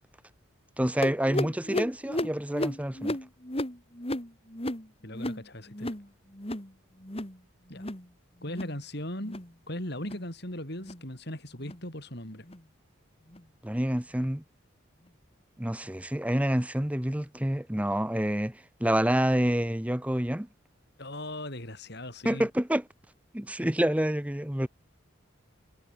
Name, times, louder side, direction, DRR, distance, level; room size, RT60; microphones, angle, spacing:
voice 1, 0.8-3.2 13.6-14.4 15.6-20.5 22.2-22.8 23.3-24.7, right 1 dB, 5° right, 0.8 m, -28 dB
sound 1, 1.0-6.1 6.3-6.7 7.0-7.4 7.7-8.1 8.4-8.8 9.2-9.5 10.0-10.3 10.8-11.0 11.6-11.8 12.4-12.6 13.3-13.4 14.2-14.3, left 1 dB, 30° left, 2.7 m, -34 dB
voice 2, 5.0-5.9 7.7-7.9 8.4-9.4 9.7-12.5 21.0-22.5, left 1 dB, 50° left, 7.4 m, -38 dB
head